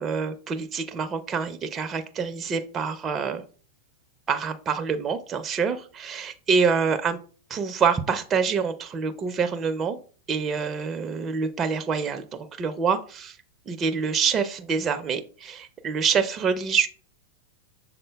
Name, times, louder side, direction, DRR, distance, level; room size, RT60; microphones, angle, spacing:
voice 1, 0.0-3.4 4.3-7.2 7.5-10.0 10.3-13.4 13.7-16.9, right 5 dB, 25° right, 7 dB, 0.5 m, -26 dB
6.3 x 3.7 x 2.3 m, 0.41 s
hypercardioid pair, 105°, 0 cm